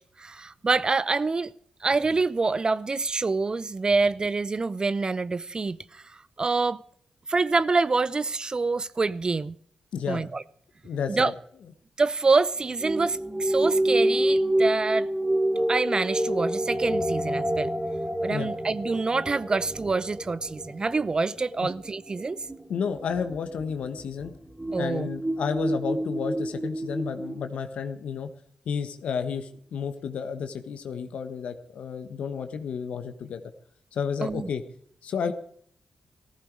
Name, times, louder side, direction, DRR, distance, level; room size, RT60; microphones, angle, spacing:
voice 1, 0.2-1.5 1.8-6.8 7.3-9.6 10.1-10.4 11.1-11.3 12.0-15.1 15.7-17.7 18.2-22.4 24.7-25.1 34.2-34.5, right 3 dB, 40° right, 0.6 m, -26 dB
voice 2, 9.9-10.2 10.8-11.3 18.3-18.5 22.7-24.3 24.7-28.3 28.6-33.4 33.9-34.6 35.0-35.3, left 6 dB, 75° left, 1.4 m, -31 dB
sound 1, 12.8-27.4, right 1 dB, 15° right, 3.1 m, -28 dB
15.0 x 15.0 x 4.8 m
supercardioid pair, 45°, 2 cm